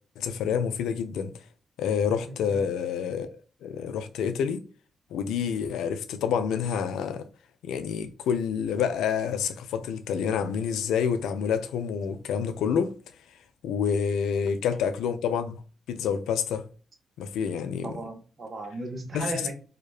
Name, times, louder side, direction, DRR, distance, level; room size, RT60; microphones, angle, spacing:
voice 1, 0.2-1.3 1.8-3.3 3.6-4.6 5.1-7.3 7.6-12.9 13.6-15.6 15.9-16.6 17.2-17.9 19.1-19.5, left 7 dB, 80° left, 0.3 m, -28 dB
voice 2, 2.3-2.7 17.8-19.5, right 2 dB, 50° right, 0.8 m, -36 dB
2.7 x 2.1 x 2.3 m
supercardioid pair, 45°, 0 cm